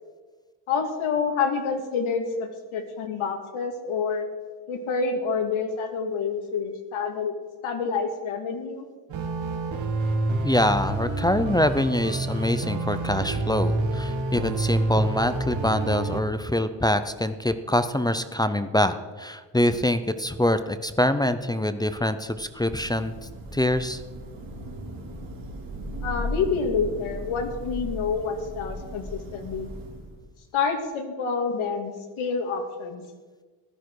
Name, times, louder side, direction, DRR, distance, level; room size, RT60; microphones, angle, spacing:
voice 1, 0.7-4.3 4.7-7.3 7.6-8.8 26.0-29.7 30.5-33.0, left 5 dB, 85° left, 4 dB, 2.4 m, -28 dB
sound 1, 9.1-16.2, right 2 dB, 70° right, 2.1 m, -28 dB
voice 2, 10.4-23.1 23.5-24.0, left 1 dB, 10° left, 11 dB, 0.5 m, -24 dB
Thunder / Rain, 22.4-30.3, equal, 45° right, 2.9 m, -37 dB
15.0 x 12.5 x 4.7 m, 1.4 s
cardioid pair, 140°, 48 cm